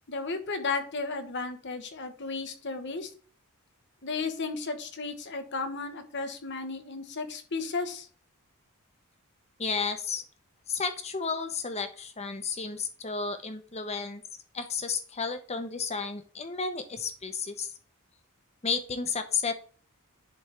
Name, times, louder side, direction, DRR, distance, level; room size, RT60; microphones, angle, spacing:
voice 1, 0.1-3.1 4.0-8.1, left 4 dB, 55° left, 7 dB, 1.2 m, -34 dB
voice 2, 9.6-10.2 10.7-14.2 14.5-17.7 18.6-19.5, left 5 dB, 30° left, 8 dB, 0.9 m, -32 dB
10.5 x 3.6 x 4.3 m, 0.43 s
head